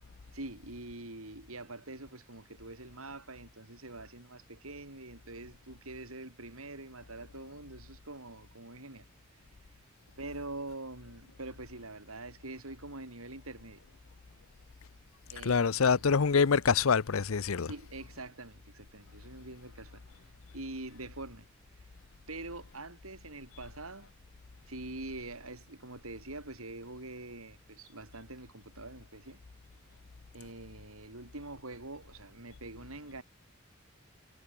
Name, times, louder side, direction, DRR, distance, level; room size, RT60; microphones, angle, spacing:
voice 1, 0.3-9.1 9.3-9.8 10.2-13.8 15.3-15.7 15.9-16.0 17.7-21.5 21.7-21.9 22.3-24.1 24.7-29.4 30.3-33.2, right 2 dB, 80° right, 6.0 m, -45 dB
voice 2, 15.4-17.7, left 5 dB, 70° left, 0.7 m, -25 dB
head